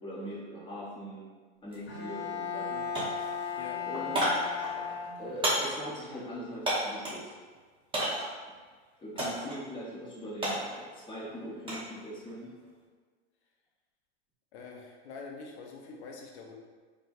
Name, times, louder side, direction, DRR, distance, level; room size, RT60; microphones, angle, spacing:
voice 1, 0.0-1.3 1.6-2.8 3.9-4.3 5.2-7.2 8.5-8.6 9.0-12.5, equal, 15° left, -7 dB, 1.0 m, -41 dB
sound 1, 1.7-1.8 2.2-2.7 2.9-7.3 7.9-8.4 9.2-9.6 9.9-11.9 12.3-12.7, right 1 dB, 15° right, 0.9 m, -33 dB
Bowed string instrument, 1.9-5.6, left 7 dB, 55° left, 1.1 m, -36 dB
voice 2, 14.5-16.6, left 4 dB, 80° left, 0 dB, 0.8 m, -45 dB
4.3 x 2.3 x 2.5 m, 1.5 s
hypercardioid pair, 125°, 33 cm